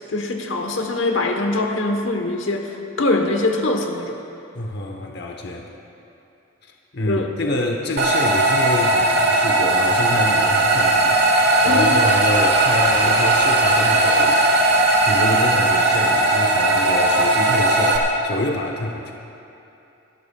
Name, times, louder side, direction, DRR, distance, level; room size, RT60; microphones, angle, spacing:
voice 1, 0.1-4.2 7.1-7.3 11.6-12.0, left 2 dB, 80° left, 3 dB, 1.1 m, -23 dB
voice 2, 4.5-5.7 6.9-14.4 15.0-19.1, left 1 dB, 55° left, 1 dB, 1.0 m, -27 dB
sound 1, 8.0-18.0, right 2 dB, 55° right, 1.4 m, -17 dB
27.0 x 12.5 x 2.4 m, 2.8 s
head